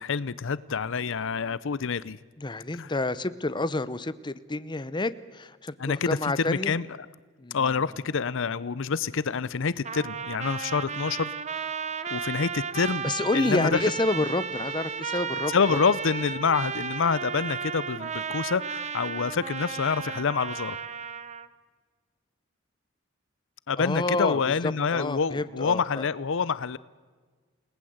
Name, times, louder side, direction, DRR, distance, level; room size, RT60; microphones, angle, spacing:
voice 1, 0.0-2.2 2.7-2.9 5.8-7.0 7.5-11.3 12.1-13.1 13.3-13.8 15.5-20.8 23.7-26.8, left 5 dB, 65° left, 18 dB, 0.6 m, -27 dB
voice 2, 2.4-6.7 7.4-7.6 13.0-15.8 23.8-26.0, left 2 dB, 20° left, 14 dB, 0.8 m, -29 dB
Trumpet, 9.8-21.5, right 6 dB, 35° right, 1.0 m, -34 dB
29.5 x 19.0 x 7.9 m, 1.4 s
head